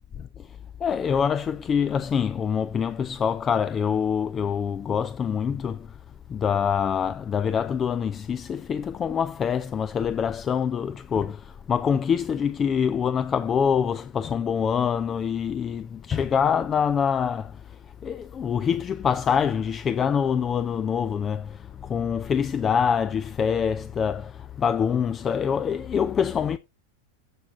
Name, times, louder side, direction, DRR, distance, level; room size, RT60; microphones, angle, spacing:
voice 1, 0.2-5.9 6.3-26.6, left 7 dB, 25° left, 0.4 m, -25 dB
16.0 x 5.9 x 2.6 m
figure-of-eight pair, 90°, 0 cm